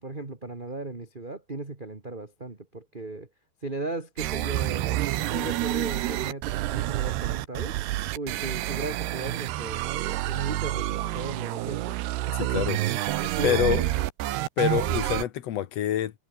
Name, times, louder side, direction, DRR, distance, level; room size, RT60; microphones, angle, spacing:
voice 1, 0.0-3.3 3.6-5.0 5.3-7.8 8.1-12.9 13.2-13.6, right 3 dB, 20° right, 1.5 m, -36 dB
sound 1, 4.2-15.2, right 16 dB, 80° right, 3.1 m, -28 dB
voice 2, 13.1-13.8 14.6-16.1, left 11 dB, 80° left, 1.5 m, -26 dB
omnidirectional pair, 4.8 m